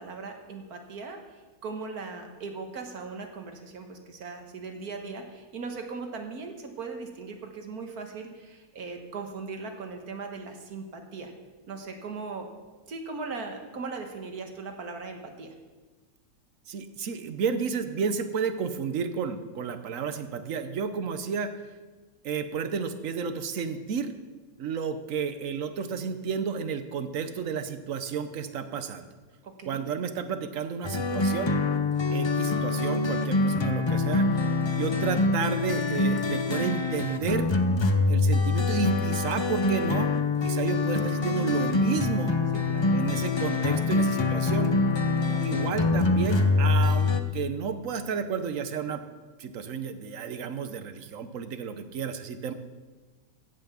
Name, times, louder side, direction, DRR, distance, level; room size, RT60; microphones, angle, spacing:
voice 1, 0.0-11.3 11.7-12.5 12.9-15.5 29.4-29.8 32.1-32.3 42.7-42.9 45.2-45.4, right 4 dB, 75° right, 4 dB, 1.9 m, -39 dB
voice 2, 16.7-21.5 22.2-24.1 24.6-29.1 29.6-31.5 32.1-34.5 34.8-37.5 38.1-40.1 40.4-42.4 42.9-44.7 45.4-49.0 49.4-52.5, right 6 dB, 60° right, 10 dB, 1.2 m, -32 dB
sound 1, 30.8-47.2, left 3 dB, 45° left, 0.3 m, -25 dB
16.0 x 5.9 x 7.0 m, 1.3 s
omnidirectional pair, 1.6 m